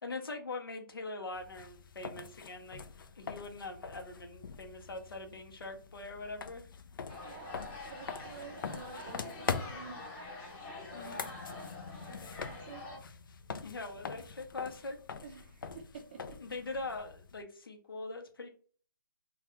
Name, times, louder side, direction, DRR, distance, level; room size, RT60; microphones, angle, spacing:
voice 1, 0.0-2.9 3.1-6.6 10.9-11.3 13.6-15.0 16.4-18.5, left 3 dB, 90° left, 4 dB, 0.8 m, -42 dB
sound 1, 1.3-17.4, left 5 dB, 70° left, 0.4 m, -44 dB
sound 2, 7.1-13.0, left 2 dB, 25° left, 0.8 m, -46 dB
voice 2, 7.2-10.0 12.0-12.8 15.2-16.4, right 5 dB, 25° right, 4 dB, 0.4 m, -50 dB
2.3 x 2.3 x 2.9 m, 0.43 s
hypercardioid pair, 155°, 12 cm